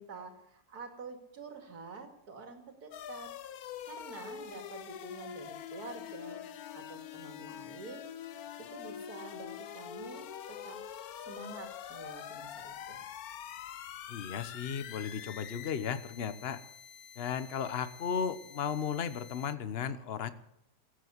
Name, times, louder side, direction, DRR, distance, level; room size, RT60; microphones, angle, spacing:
voice 1, 0.0-3.3 3.9-6.4 6.7-8.1 8.6-10.8 11.3-13.0, right 4 dB, 70° right, 5 dB, 2.9 m, -48 dB
sound 1, 2.9-19.5, left 9 dB, 70° left, 1.3 m, -45 dB
voice 2, 14.1-16.6 17.2-20.3, left 7 dB, 45° left, 13 dB, 1.1 m, -35 dB
18.0 x 8.3 x 9.6 m, 0.81 s
omnidirectional pair, 1.7 m